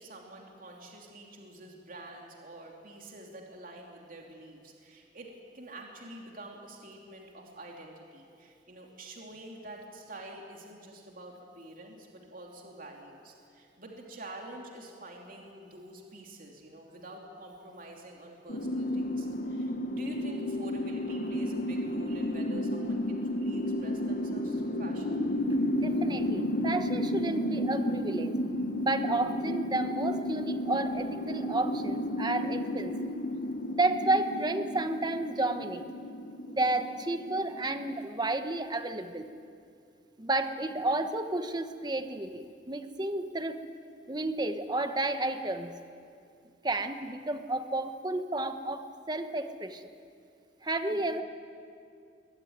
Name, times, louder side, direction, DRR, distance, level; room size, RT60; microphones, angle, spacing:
voice 1, 0.0-25.2 50.9-51.1, right 1 dB, 50° right, 0 dB, 3.1 m, -47 dB
sound 1, 18.5-38.0, left 1 dB, 50° left, 1.2 m, -32 dB
voice 2, 25.7-28.3 28.8-32.9 33.7-35.8 36.5-39.3 40.2-43.6 44.1-45.7 46.6-49.8 50.6-51.2, right 2 dB, 25° right, 8 dB, 1.3 m, -31 dB
22.5 x 19.0 x 9.5 m, 2.4 s
head